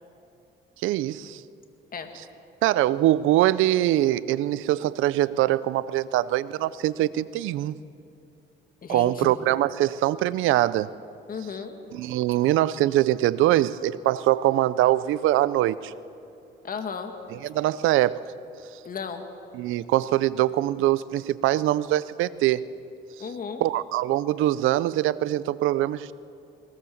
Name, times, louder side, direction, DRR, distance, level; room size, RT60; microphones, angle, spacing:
voice 1, 0.8-1.4 2.6-7.8 8.9-10.9 11.9-15.9 17.4-18.3 19.5-22.6 23.6-26.1, right 14 dB, 90° right, 18 dB, 0.6 m, -23 dB
voice 2, 8.8-9.3 11.3-11.8 16.6-17.1 18.8-19.2 23.2-23.6, left 6 dB, 45° left, 6 dB, 2.1 m, -34 dB
21.5 x 19.0 x 7.2 m, 2.6 s
cardioid pair, 90°, 20 cm